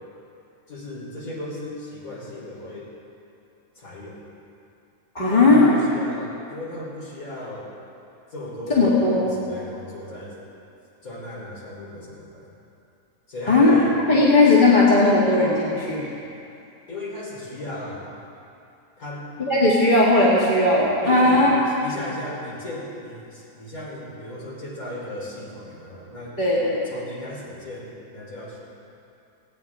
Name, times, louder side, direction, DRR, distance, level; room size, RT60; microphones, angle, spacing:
voice 1, 0.7-2.9 3.7-4.2 5.3-7.7 8.3-8.9 9.2-10.4 11.0-12.5 13.3-14.0 16.9-18.1 19.0-19.2 21.0-26.4 26.7-28.6, left 1 dB, 60° left, -6 dB, 4.4 m, -36 dB
voice 2, 5.1-5.7 8.7-9.3 13.5-13.8 14.1-16.1 19.5-21.5 26.4-26.8, left 2 dB, 30° left, -7 dB, 2.4 m, -17 dB
18.5 x 17.0 x 3.7 m, 2.7 s
omnidirectional pair, 1.7 m